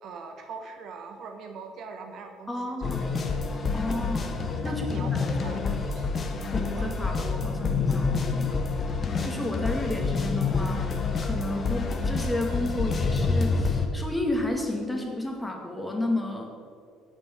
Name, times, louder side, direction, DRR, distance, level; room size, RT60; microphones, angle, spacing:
voice 1, 0.0-3.4 4.6-6.1 6.7-7.2, right 4 dB, 50° right, 5 dB, 1.0 m, -42 dB
voice 2, 2.5-3.0 3.7-4.4 4.6-5.1 5.4-5.7 6.5-8.7 9.2-10.9 11.2-16.5, left 1 dB, 10° left, 1 dB, 2.2 m, -32 dB
sound 1, 2.8-13.9, left 4 dB, 35° left, 1.2 m, -28 dB
9.3 x 8.9 x 6.6 m, 2.3 s
figure-of-eight pair, 55°, 0 cm